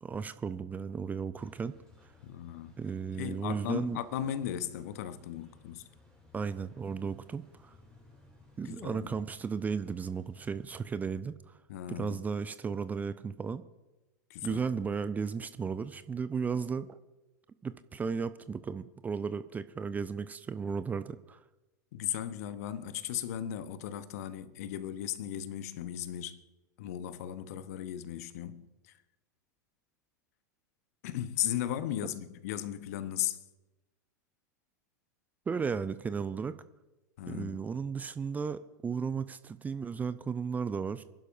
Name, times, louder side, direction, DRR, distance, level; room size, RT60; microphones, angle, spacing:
voice 1, 0.0-1.8 2.8-4.0 6.3-7.7 8.6-11.4 11.9-13.6 14.4-17.0 17.6-21.4 35.5-36.5 37.3-41.0, right 5 dB, 15° right, 0.5 m, -35 dB
sound 1, 1.3-11.2, left 2 dB, 10° left, 4.1 m, -60 dB
voice 2, 2.2-2.7 3.2-5.8 8.6-9.2 11.7-12.2 14.3-14.6 21.9-26.4 26.8-28.9 31.0-33.4 37.2-37.6, left 11 dB, 55° left, 1.0 m, -36 dB
27.5 x 11.5 x 2.6 m
figure-of-eight pair, 90°, 10 cm